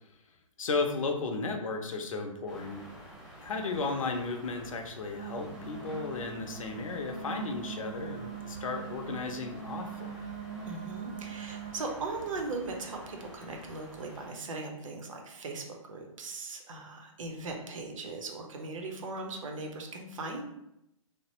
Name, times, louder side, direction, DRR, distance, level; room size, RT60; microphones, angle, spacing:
voice 1, 0.6-2.9 3.4-10.3, left 3 dB, 75° left, 5 dB, 0.6 m, -34 dB
sound 1, 2.5-14.3, equal, ahead, 0.9 m, -49 dB
sound 2, 5.1-11.7, right 7 dB, 25° right, 0.3 m, -42 dB
voice 2, 10.6-20.4, right 3 dB, 70° right, 3 dB, 0.7 m, -39 dB
3.2 x 2.1 x 2.9 m, 0.83 s
hypercardioid pair, 150°, 17 cm